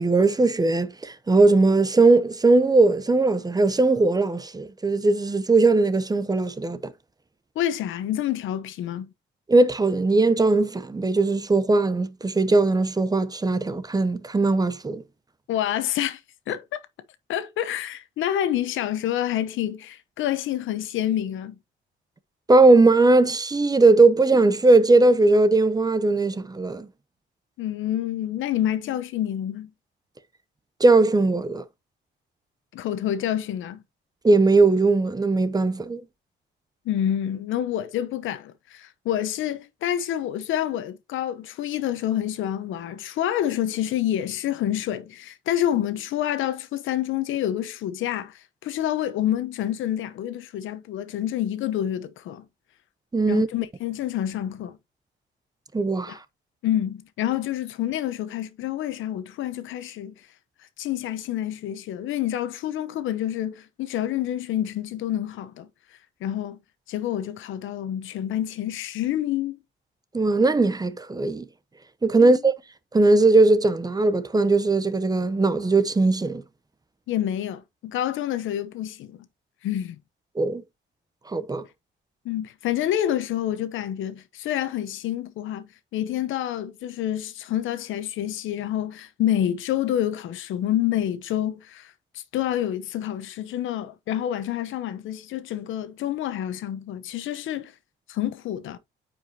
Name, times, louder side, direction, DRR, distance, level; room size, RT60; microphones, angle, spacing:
voice 1, 0.0-6.8 9.5-15.0 22.5-26.9 30.8-31.6 34.2-36.0 53.1-53.5 55.7-56.2 70.1-71.5 72.0-72.5 72.9-76.4 80.4-80.6 81.3-81.6, right 3 dB, 20° right, 0.7 m, -19 dB
voice 2, 7.5-9.1 15.5-16.2 16.5-16.8 17.3-21.6 27.6-29.7 32.7-33.8 36.8-52.4 53.3-54.8 56.1-56.2 56.6-60.1 60.8-65.7 66.2-66.6 66.9-69.6 72.2-72.4 77.1-79.3 79.6-80.0 82.2-97.7 98.1-98.8, left 11 dB, 80° left, 0.9 m, -28 dB
9.0 x 5.1 x 2.8 m
cardioid pair, 90°, 20 cm